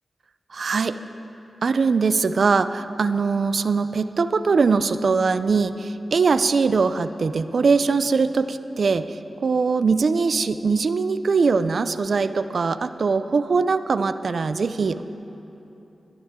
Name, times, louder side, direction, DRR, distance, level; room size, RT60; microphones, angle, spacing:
voice 1, 0.5-1.0 1.6-15.0, right 4 dB, 70° right, 12 dB, 0.5 m, -21 dB
21.5 x 14.5 x 3.7 m, 3.0 s
cardioid pair, 60°, 0 cm